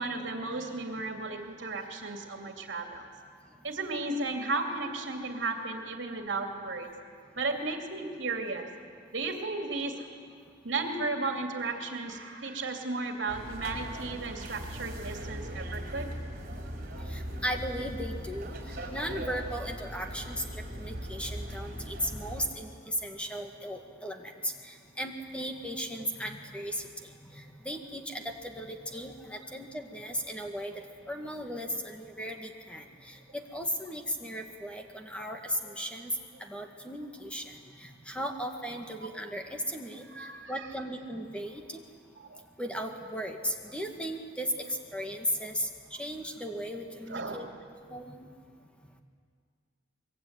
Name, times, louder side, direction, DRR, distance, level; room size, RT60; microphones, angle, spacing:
voice 1, 0.0-3.1 3.6-6.9 7.4-8.7 9.1-10.1 10.6-16.1 40.1-40.5 42.2-42.4 47.1-47.5, right 3 dB, 70° right, 3 dB, 2.8 m, -34 dB
sound 1, 13.3-22.5, equal, 50° right, 4.8 m, -39 dB
voice 2, 17.0-36.1 36.4-41.8 42.6-47.5 47.9-48.3, equal, 5° left, 3 dB, 2.1 m, -36 dB
25.0 x 22.5 x 9.6 m, 2.1 s
head